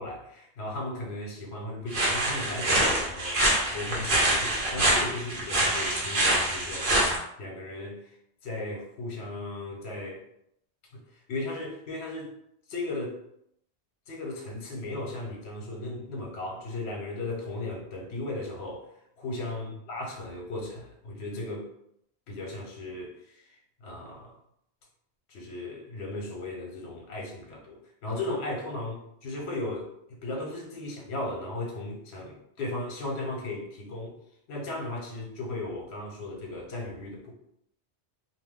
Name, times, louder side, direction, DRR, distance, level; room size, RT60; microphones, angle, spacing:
voice 1, 0.0-8.2 8.4-10.2 10.9-12.3 12.7-13.2 14.1-21.7 22.3-24.4 25.3-29.0 29.2-34.2 34.5-37.3, left 2 dB, 75° left, 0 dB, 1.0 m, -36 dB
sound 1, 1.9-7.2, right 1 dB, 55° right, 0.9 m, -25 dB
2.4 x 2.1 x 3.5 m, 0.74 s
omnidirectional pair, 1.1 m